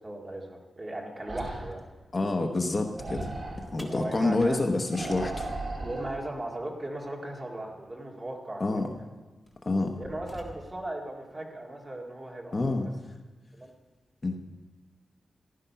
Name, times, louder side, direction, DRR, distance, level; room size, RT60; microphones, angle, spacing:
voice 1, 0.0-1.8 3.8-4.6 5.8-8.8 10.0-12.5 13.5-13.7, right 1 dB, 20° right, -1 dB, 1.9 m, -37 dB
sound 1, 1.2-1.8 2.9-3.7 4.9-6.2, right 2 dB, 40° right, 2.9 m, -36 dB
voice 2, 2.1-3.3 3.7-5.5 8.6-8.9 9.6-10.0 12.5-12.9 14.2-14.4, left 2 dB, 30° left, 3 dB, 0.9 m, -27 dB
sound 2, 3.8-6.0 7.8-7.9 8.8-9.0 9.5-11.0, left 1 dB, 10° left, 1.7 m, -49 dB
15.0 x 11.5 x 5.7 m, 1.2 s
wide cardioid pair, 170°, 0 cm